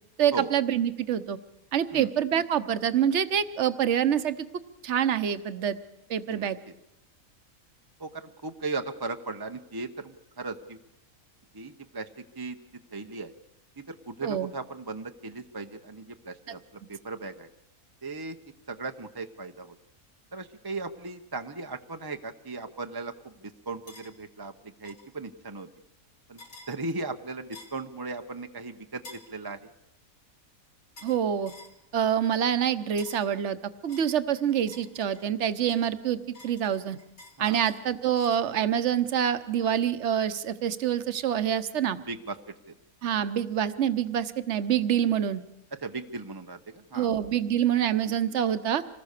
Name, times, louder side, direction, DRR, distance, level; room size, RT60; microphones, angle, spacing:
voice 1, 0.2-1.4 1.7-4.5 4.8-5.8 6.1-6.6 14.2-14.5 16.5-16.6 31.0-31.5 31.9-33.6 33.8-37.0 37.4-42.0 43.0-45.4 46.9-48.8, right 9 dB, 55° right, 12 dB, 1.2 m, -26 dB
voice 2, 8.0-10.8 11.5-12.1 12.4-12.6 12.9-13.3 13.9-16.6 16.9-17.5 18.0-18.4 18.7-19.7 20.3-23.1 23.7-24.5 24.8-25.7 26.3-26.4 26.7-29.0 29.3-29.6 37.4-37.6 42.1-42.4 45.8-47.1, right 3 dB, 20° right, 6 dB, 0.6 m, -37 dB
sound 1, 23.9-24.1 24.8-25.1 26.4-26.7 27.5-27.8 29.0-29.3 31.0-31.2 31.5-31.8 33.0-33.3 33.9-35.3 35.7-38.5, left 2 dB, 75° left, 3.8 m, -50 dB
26.0 x 19.5 x 6.7 m, 0.86 s
omnidirectional pair, 1.5 m